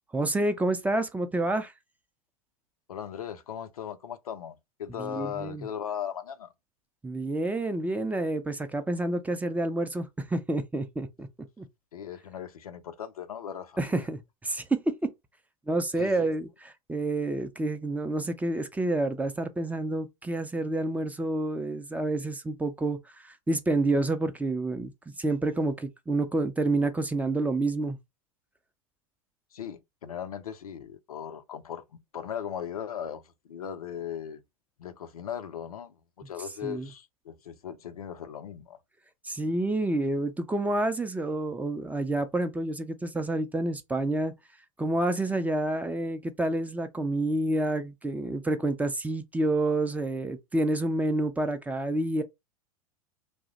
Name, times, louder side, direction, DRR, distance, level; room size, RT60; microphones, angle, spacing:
voice 1, 0.1-1.7 5.0-5.7 7.0-11.3 11.6-11.7 13.8-14.2 14.4-15.1 15.7-28.0 36.6-36.9 39.2-44.3 44.8-52.2, right 2 dB, 10° right, 0.4 m, -28 dB
voice 2, 2.9-6.5 11.9-14.1 16.0-16.4 29.5-34.4 34.8-36.0 36.3-38.8, left 9 dB, 85° left, 0.5 m, -38 dB
2.7 x 2.0 x 3.8 m
hypercardioid pair, 90°, 18 cm